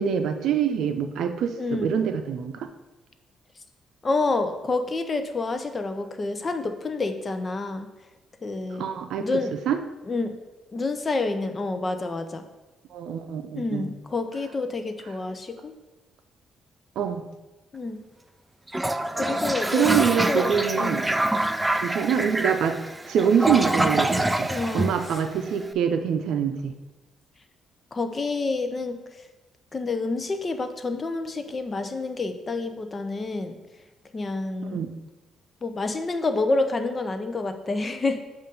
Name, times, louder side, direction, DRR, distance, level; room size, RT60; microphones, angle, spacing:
voice 1, 0.0-2.5 8.8-9.3 9.7-9.8 12.9-13.9 17.0-17.2 19.7-21.0 21.8-22.8 23.1-26.7 34.7-34.9, right 8 dB, 75° right, 7 dB, 0.5 m, -25 dB
voice 2, 1.6-2.0 4.0-7.9 8.4-8.9 9.2-9.6 10.1-10.4 10.7-12.5 13.6-15.7 17.7-18.0 19.1-21.0 24.5-24.9 27.9-29.3 29.7-33.6 34.1-34.8 35.6-38.2, left 3 dB, 30° left, 8 dB, 0.6 m, -28 dB
Toilet flush, 18.7-25.6, right 1 dB, 10° right, 0.3 m, -26 dB
7.5 x 2.6 x 5.3 m, 1.1 s
cardioid pair, 90°, 0 cm